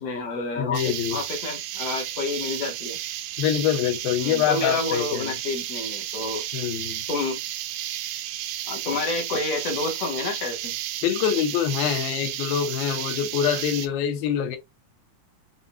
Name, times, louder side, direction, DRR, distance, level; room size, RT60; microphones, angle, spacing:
voice 1, 0.0-3.0 4.2-6.5 7.1-7.4 8.7-10.7, left 3 dB, 60° left, 1.7 m, -29 dB
voice 2, 0.6-1.2 3.4-5.3 6.5-7.0 11.0-14.6, left 9 dB, 80° left, 2.7 m, -25 dB
sound 1, 0.7-13.9, right 12 dB, 80° right, 2.4 m, -32 dB
7.2 x 2.6 x 2.2 m
omnidirectional pair, 4.3 m